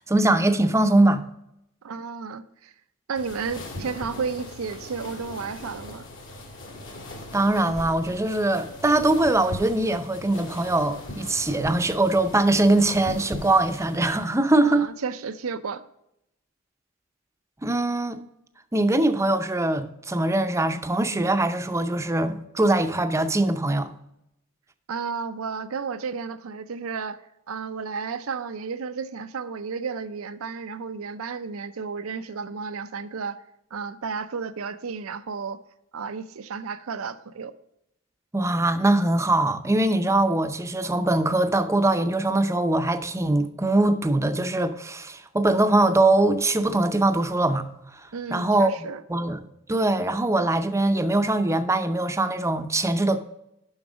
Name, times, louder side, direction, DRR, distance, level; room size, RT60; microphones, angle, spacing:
voice 1, 0.1-1.2 7.3-14.9 17.6-18.2 18.7-23.9 38.3-47.7 48.3-49.4 49.7-53.2, right 2 dB, 15° right, 0.6 m, -22 dB
voice 2, 1.8-2.7 3.1-6.0 14.6-15.8 24.9-27.2 27.5-33.4 33.7-35.6 35.9-37.5 48.1-49.0, right 5 dB, 75° right, 0.5 m, -32 dB
sound 1, 3.1-14.3, left 1 dB, 65° left, 1.8 m, -39 dB
7.2 x 5.9 x 5.1 m
head